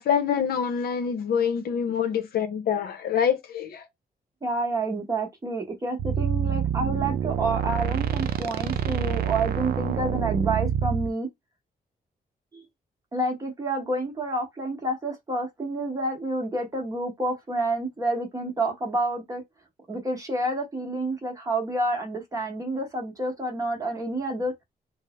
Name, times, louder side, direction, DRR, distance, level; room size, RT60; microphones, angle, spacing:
voice 1, 0.0-3.9, left 7 dB, 75° left, 0.6 m, -26 dB
voice 2, 4.4-11.3 12.5-12.6 13.1-19.4 19.9-24.5, right 2 dB, 20° right, 0.9 m, -29 dB
sound 1, 6.0-11.1, right 9 dB, 75° right, 0.4 m, -27 dB
3.2 x 2.0 x 2.9 m
wide cardioid pair, 150°, 16 cm